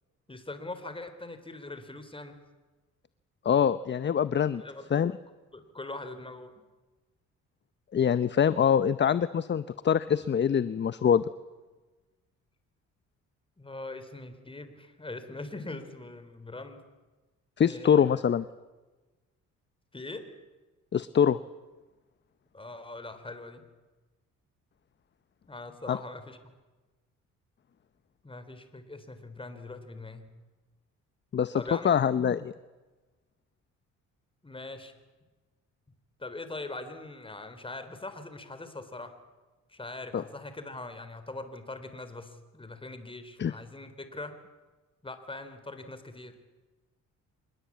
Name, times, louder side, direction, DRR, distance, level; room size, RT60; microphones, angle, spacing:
voice 1, 0.3-2.4 4.3-4.9 5.5-6.5 13.6-16.8 17.6-18.2 19.9-20.3 22.5-23.6 25.5-26.4 28.2-30.3 31.5-32.0 34.4-34.9 36.2-39.2 39.7-44.4 45.0-46.4, left 2 dB, 15° left, 10 dB, 3.7 m, -42 dB
voice 2, 3.4-4.6 4.9-5.1 7.9-11.3 17.6-18.4 20.9-21.4 25.9-26.0 31.3-32.5 40.1-40.2 43.4-43.5, left 8 dB, 35° left, 15 dB, 0.8 m, -24 dB
26.0 x 21.0 x 8.6 m, 1.2 s
cardioid pair, 90°, 30 cm